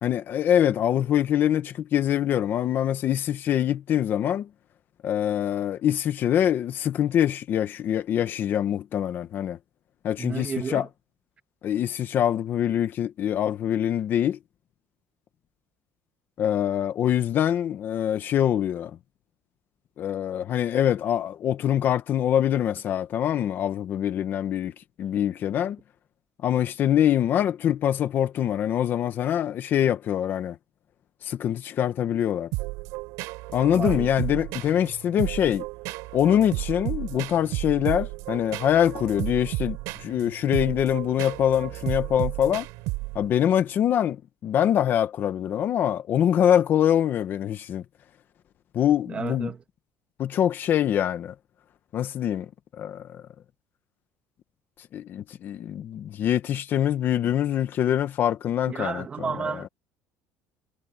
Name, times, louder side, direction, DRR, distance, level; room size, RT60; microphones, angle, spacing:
voice 1, 0.0-4.5 5.0-9.6 10.0-10.9 11.6-14.4 16.4-19.0 20.0-25.8 26.4-30.6 31.2-32.5 33.5-35.7 36.1-42.7 43.1-47.8 48.7-49.5 50.2-51.3 51.9-53.2 54.9-59.6, left 10 dB, 35° left, 1.1 m, -24 dB
voice 2, 10.2-10.9 33.7-34.1 49.1-49.6 58.7-59.7, right 6 dB, 20° right, 2.1 m, -32 dB
sound 1, 32.5-43.4, right 23 dB, 85° right, 3.8 m, -33 dB
cardioid pair, 170°, 6 cm